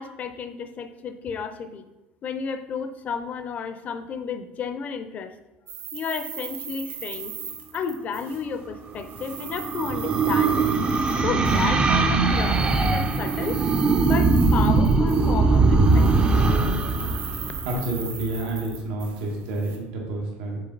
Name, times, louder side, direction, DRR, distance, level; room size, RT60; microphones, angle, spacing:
voice 1, 0.0-1.8 2.2-5.3 5.9-7.3 7.7-10.7 11.2-13.6 14.0-16.1, left 6 dB, 35° left, 10 dB, 0.6 m, -32 dB
sound 1, 5.7-8.6 8.9-11.7 12.3-15.6 15.8-19.8, right 7 dB, 55° right, 1.2 m, -38 dB
sound 2, 8.8-18.3, right 3 dB, 25° right, 0.5 m, -21 dB
voice 2, 17.6-20.6, right 2 dB, 85° right, -1 dB, 1.5 m, -29 dB
6.6 x 3.8 x 3.9 m, 1.1 s
cardioid pair, 130°, 4 cm